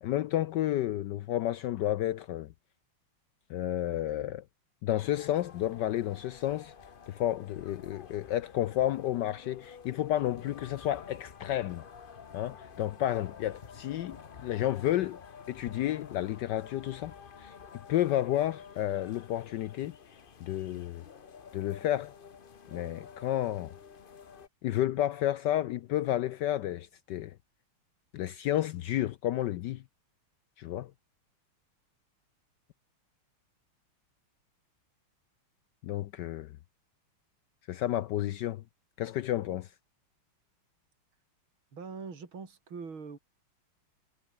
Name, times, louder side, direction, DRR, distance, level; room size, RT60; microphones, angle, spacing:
voice 1, 0.0-2.5 3.5-4.4 4.8-6.7 7.1-11.8 12.3-15.2 15.5-17.1 17.4-17.5 17.9-19.9 20.4-21.0 21.5-22.1 22.7-23.7 24.6-27.4 28.1-29.8 30.6-30.9 35.8-36.6 37.7-38.6 39.0-39.7, left 13 dB, 70° left, 1.0 m, -31 dB
sound 1, 5.0-24.5, left 6 dB, 45° left, 0.7 m, -50 dB
voice 2, 41.7-43.2, right 5 dB, 70° right, 4.0 m, -42 dB
omnidirectional pair, 2.3 m